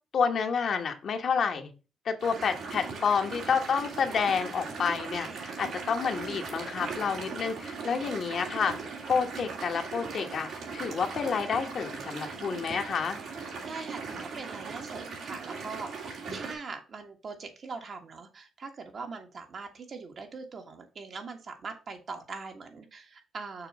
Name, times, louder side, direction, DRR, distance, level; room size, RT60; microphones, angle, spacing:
voice 1, 0.1-1.7 2.0-8.7 9.1-13.2, left 6 dB, 60° left, 5 dB, 1.2 m, -29 dB
sound 1, 2.2-16.5, right 4 dB, 75° right, 2.4 m, -39 dB
voice 2, 5.1-5.6 6.1-6.4 13.6-23.7, right 4 dB, 55° right, 4 dB, 1.6 m, -42 dB
6.7 x 3.2 x 6.0 m, 0.32 s
cardioid pair, 75°, 0 cm